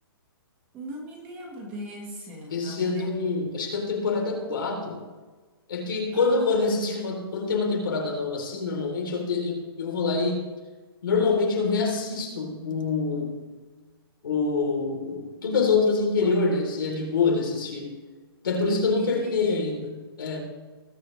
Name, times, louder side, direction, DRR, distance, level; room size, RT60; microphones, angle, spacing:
voice 1, 0.7-3.1 6.1-6.5 16.2-16.4 19.0-19.6, equal, 15° right, -1 dB, 1.5 m, -39 dB
voice 2, 2.5-5.1 5.7-10.5 11.0-13.4 14.2-18.0 18.4-20.4, left 4 dB, 60° left, 2 dB, 3.3 m, -26 dB
19.5 x 8.7 x 3.2 m, 1.3 s
hypercardioid pair, 180°, 13 cm